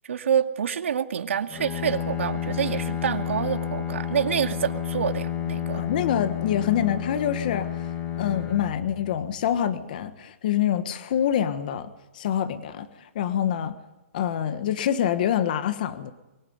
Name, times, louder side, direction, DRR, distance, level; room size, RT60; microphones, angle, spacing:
voice 1, 0.1-5.9, right 8 dB, 65° right, 6 dB, 2.3 m, -27 dB
Bowed string instrument, 1.5-9.5, left 9 dB, 15° left, 2.0 m, -31 dB
voice 2, 5.7-7.7 8.2-13.7 14.1-16.1, left 10 dB, 40° left, 10 dB, 1.4 m, -26 dB
24.0 x 19.5 x 9.6 m, 1.1 s
hypercardioid pair, 170°, 7 cm